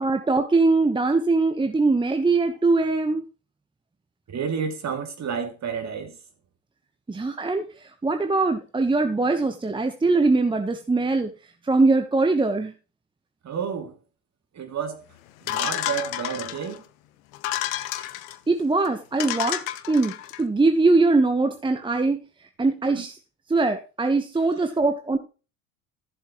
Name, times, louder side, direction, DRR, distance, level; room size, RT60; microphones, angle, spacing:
voice 1, 0.0-3.2 7.1-11.3 11.6-12.7 18.5-22.2 22.6-23.1 23.5-25.2, right 3 dB, 10° right, 1.1 m, -22 dB
voice 2, 4.3-6.2 13.4-14.0 14.5-15.0 15.4-16.8 22.9-23.1, right 7 dB, 40° right, 2.7 m, -30 dB
sound 1, 15.5-16.8 17.3-18.4 18.9-19.0 19.2-20.4, left 14 dB, 70° left, 1.1 m, -30 dB
14.5 x 7.4 x 3.0 m
hypercardioid pair, 70°, 41 cm